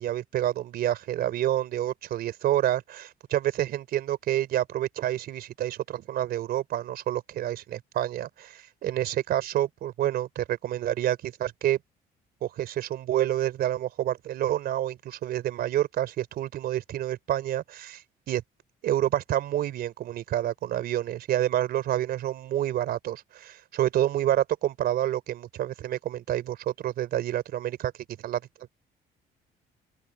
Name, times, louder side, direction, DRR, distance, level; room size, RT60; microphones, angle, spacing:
voice 1, 0.0-11.8 12.4-18.0 18.3-18.4 18.8-28.4, right 12 dB, 65° right, 3.8 m, -28 dB
open air
cardioid pair, 110°, 17 cm